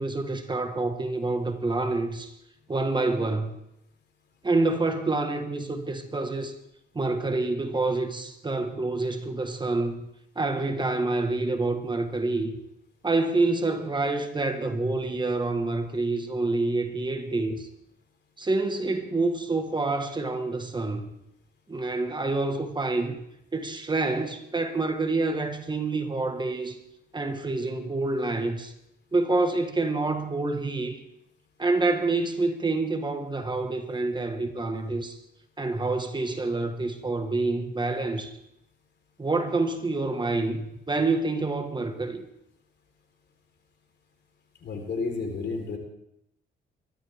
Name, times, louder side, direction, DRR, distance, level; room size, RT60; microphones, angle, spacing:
voice 1, 0.0-2.3 2.7-3.5 4.4-6.6 6.9-10.0 10.3-12.5 13.0-17.7 18.4-21.1 21.7-23.2 23.5-26.8 27.1-28.7 29.1-31.0 31.6-35.2 35.6-38.4 39.2-42.3, right 3 dB, 20° right, 1.5 m, -27 dB
voice 2, 44.6-45.8, left 4 dB, 60° left, 3.8 m, -31 dB
23.0 x 12.0 x 3.5 m
cardioid pair, 90°, 20 cm